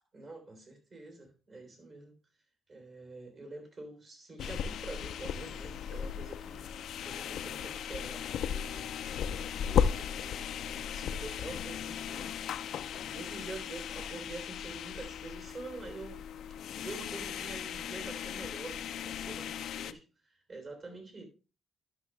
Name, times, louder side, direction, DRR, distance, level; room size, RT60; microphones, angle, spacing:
voice 1, 0.1-2.1 2.7-6.7 7.1-8.9 9.7-12.3 13.0-16.2 16.7-21.2, right 3 dB, 40° right, 3.6 m, -46 dB
sound 1, 4.4-19.9, left 8 dB, 70° left, 0.5 m, -36 dB
11.5 x 6.2 x 3.3 m
cardioid pair, 90°, 0 cm